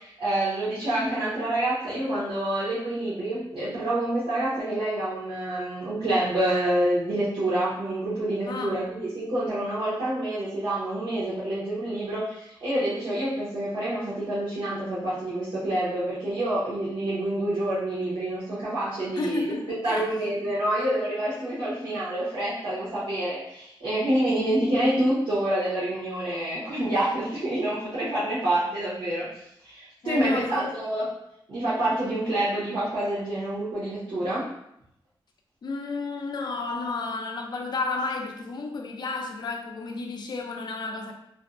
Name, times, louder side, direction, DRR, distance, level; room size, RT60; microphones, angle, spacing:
voice 1, 0.0-19.4 19.8-29.3 29.6-31.0 31.5-34.5, right 1 dB, 85° right, -11 dB, 0.8 m, -27 dB
voice 2, 8.5-8.8 19.2-20.1 30.0-30.8 35.6-41.1, left 3 dB, 55° left, 3 dB, 0.4 m, -32 dB
2.5 x 2.1 x 2.4 m, 0.77 s
wide cardioid pair, 120°, 9 cm